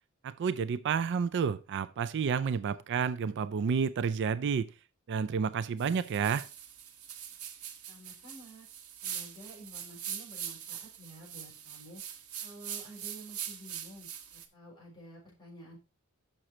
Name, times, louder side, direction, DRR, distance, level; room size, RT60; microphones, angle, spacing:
voice 1, 0.2-4.7 5.1-6.5, right 6 dB, 55° right, 0.4 m, -30 dB
sound 1, 5.8-14.5, right 9 dB, 85° right, 1.1 m, -43 dB
voice 2, 7.9-8.7 9.0-12.0 12.4-15.8, right 1 dB, 20° left, 4.8 m, -51 dB
6.5 x 6.1 x 4.2 m
head